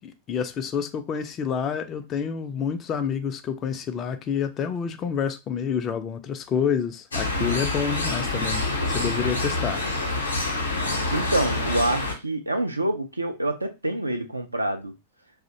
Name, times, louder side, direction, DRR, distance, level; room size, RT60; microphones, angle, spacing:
voice 1, 0.0-9.8, left 7 dB, 30° left, 0.3 m, -28 dB
sound 1, 7.1-12.2, left 2 dB, 75° left, 0.6 m, -27 dB
voice 2, 11.1-14.9, right 1 dB, 85° right, 0.4 m, -27 dB
2.5 x 2.0 x 2.7 m
figure-of-eight pair, 90°, 0 cm